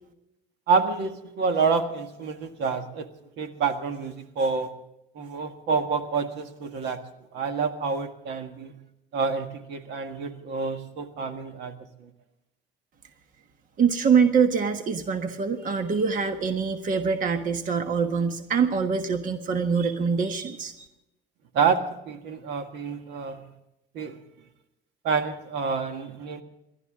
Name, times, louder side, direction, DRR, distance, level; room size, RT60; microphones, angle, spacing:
voice 1, 0.7-3.1 3.4-4.7 5.2-7.0 7.3-8.8 9.1-11.7 12.0-12.1 21.5-23.5 23.9-24.2 25.0-26.4, right 5 dB, 75° right, 7 dB, 1.8 m, -28 dB
voice 2, 13.8-20.9, right 6 dB, 45° right, 6 dB, 1.4 m, -24 dB
28.5 x 12.5 x 3.7 m, 0.89 s
cardioid pair, 130°, 18 cm